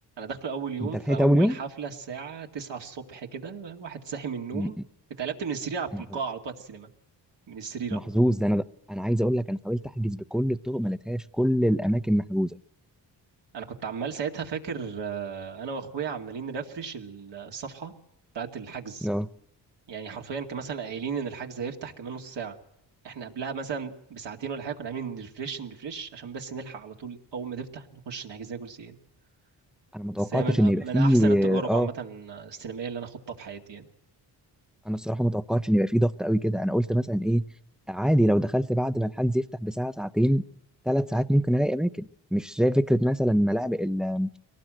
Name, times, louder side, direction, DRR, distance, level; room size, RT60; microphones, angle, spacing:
voice 1, 0.2-4.8 5.2-6.9 7.5-8.3 13.5-17.9 18.3-19.1 19.9-22.6 23.0-29.0 30.2-33.9, right 6 dB, 65° right, 2 dB, 2.4 m, -35 dB
voice 2, 0.8-1.6 4.5-4.7 5.9-6.0 7.9-12.5 19.0-19.3 29.9-31.9 34.9-37.4 37.9-40.4 40.9-44.3, equal, ahead, 11 dB, 0.8 m, -24 dB
23.0 x 18.5 x 7.7 m, 0.79 s
supercardioid pair, 55°, 45 cm